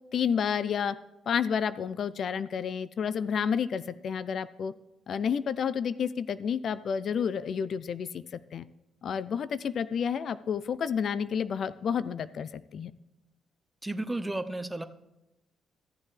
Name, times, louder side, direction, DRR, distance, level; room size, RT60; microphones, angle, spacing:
voice 1, 0.1-1.0 1.3-4.7 5.1-8.7 9.0-12.9, left 7 dB, 60° left, 16 dB, 0.3 m, -30 dB
voice 2, 13.8-14.9, right 2 dB, 10° right, 11 dB, 0.6 m, -33 dB
14.5 x 7.3 x 3.2 m, 0.95 s
cardioid pair, 90°, 0 cm